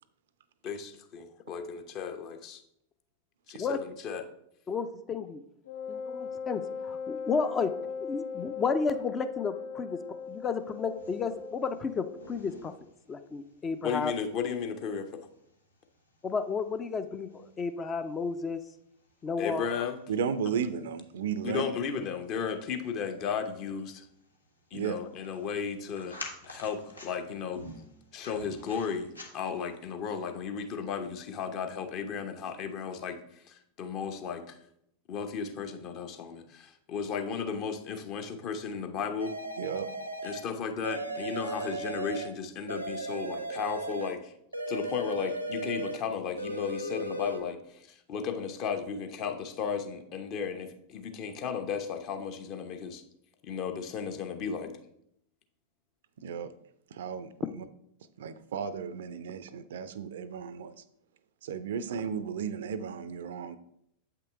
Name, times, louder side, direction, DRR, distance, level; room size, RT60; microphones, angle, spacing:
voice 1, 0.6-2.6 3.5-4.2 13.8-15.3 19.4-20.0 21.4-24.1 24.7-26.2 26.5-27.6 28.1-34.4 35.1-39.4 40.2-44.3 44.7-53.0 53.4-54.7, left 6 dB, 40° left, 7 dB, 0.9 m, -35 dB
voice 2, 4.7-5.4 5.9-7.7 8.0-10.0 10.3-12.7 13.1-14.1 16.2-18.6 19.2-19.7, left 5 dB, 20° left, 10 dB, 0.5 m, -32 dB
Wind instrument woodwind instrument, 5.6-12.3, left 5 dB, 65° left, 0.6 m, -39 dB
sound 1, 10.4-29.8, left 2 dB, 85° left, 1.3 m, -52 dB
voice 3, 20.1-21.6 24.7-25.0 39.6-39.9 56.2-56.5 56.9-57.6 58.2-60.8 61.4-63.6, right 7 dB, 60° right, 14 dB, 0.5 m, -34 dB
sound 2, 39.2-40.5 40.8-42.4 42.7-44.2 44.5-46.0 46.4-47.4, right 1 dB, 85° right, 0.7 m, -36 dB
7.9 x 5.8 x 3.5 m, 0.75 s
figure-of-eight pair, 90°, 0 cm